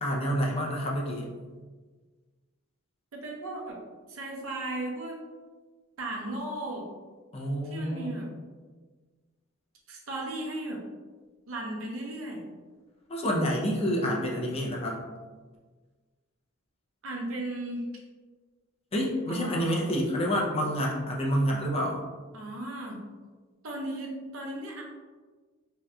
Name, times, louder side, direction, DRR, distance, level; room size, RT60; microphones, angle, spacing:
voice 1, 0.0-1.3 7.3-8.2 13.1-15.0 18.9-22.0, equal, 30° left, -2 dB, 0.5 m, -28 dB
voice 2, 3.1-3.8 4.1-5.2 6.0-6.9 7.6-8.3 9.9-10.8 11.5-12.5 17.0-17.8 19.3-19.9 22.3-23.0 23.6-24.8, right 1 dB, 80° right, -1 dB, 0.7 m, -36 dB
3.5 x 2.8 x 2.3 m, 1.4 s
head